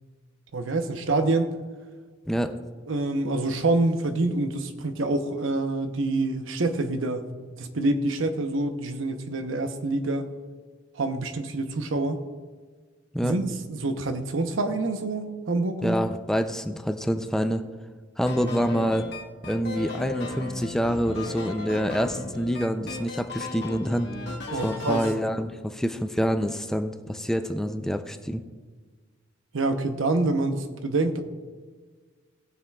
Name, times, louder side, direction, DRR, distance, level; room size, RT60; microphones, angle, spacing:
voice 1, 0.5-1.5 2.9-7.3 7.6-10.3 11.0-12.2 13.2-16.0 24.5-25.0 29.5-31.2, right 2 dB, 80° right, 7 dB, 0.8 m, -26 dB
voice 2, 15.8-17.6 18.2-19.1 19.5-24.1 24.6-28.4, equal, 5° left, 7 dB, 0.4 m, -26 dB
sound 1, 18.3-25.2, left 4 dB, 60° left, 1.3 m, -36 dB
19.5 x 7.2 x 2.3 m, 1.5 s
head